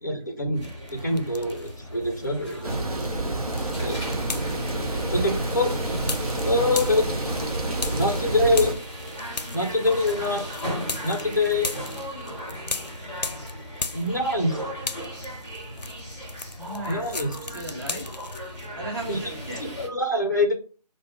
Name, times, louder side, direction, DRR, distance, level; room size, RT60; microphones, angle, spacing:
voice 1, 0.0-2.8 3.8-4.0 5.1-5.8 6.4-7.1 7.9-8.8 9.5-10.4 11.0-11.7 13.9-14.6 16.8-17.3 19.1-20.5, left 2 dB, 25° left, 3 dB, 0.5 m, -25 dB
sound 1, 0.5-19.9, equal, 5° right, 0.8 m, -37 dB
sound 2, 0.6-1.8 2.1-14.5 14.8-18.7, left 4 dB, 80° left, 0.5 m, -37 dB
sound 3, 2.6-8.7, right 2 dB, 65° right, 0.7 m, -28 dB
voice 2, 3.7-4.1 16.6-17.0 17.4-18.1 18.8-19.6, right 1 dB, 35° right, -3 dB, 1.0 m, -37 dB
2.2 x 2.1 x 3.3 m, 0.36 s
figure-of-eight pair, 165°, 21 cm